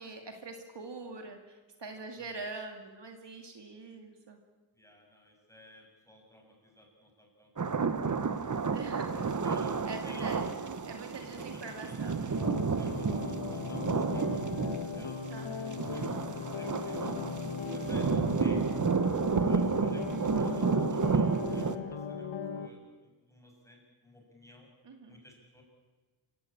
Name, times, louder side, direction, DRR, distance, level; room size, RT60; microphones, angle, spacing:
voice 1, 0.0-4.4 8.7-9.2 9.4-9.6 9.9-10.5 10.9-12.4 15.3-15.8 19.1-19.5 24.8-25.2, right 3 dB, 60° right, 4 dB, 2.5 m, -44 dB
voice 2, 4.7-8.2 9.4-10.4 11.4-12.0 12.8-15.2 15.5-17.2 17.6-18.1 18.4-18.6 19.3-22.3 22.5-24.7 25.1-25.6, left 1 dB, 5° left, -1 dB, 7.0 m, -56 dB
sound 1, 7.6-21.8, right 5 dB, 40° right, 1.3 m, -31 dB
sound 2, 12.3-22.7, left 6 dB, 75° left, 2.0 m, -38 dB
27.5 x 16.5 x 8.7 m, 1.3 s
wide cardioid pair, 135°, 48 cm